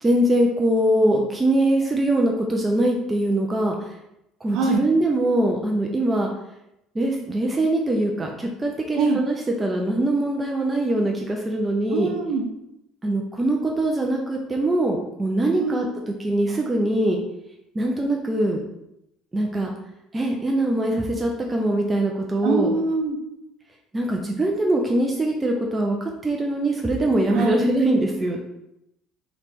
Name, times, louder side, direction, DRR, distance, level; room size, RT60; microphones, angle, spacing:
voice 1, 0.0-4.0 4.4-6.3 6.9-12.1 13.0-17.2 17.7-18.6 19.3-19.7 20.1-22.7 23.9-28.4, right 1 dB, 15° right, 0 dB, 0.4 m, -22 dB
voice 2, 11.9-12.5 15.6-15.8 22.4-23.2 27.3-27.5, right 4 dB, 70° right, 3 dB, 0.5 m, -23 dB
3.0 x 2.9 x 3.4 m, 0.84 s
cardioid pair, 130°, 0 cm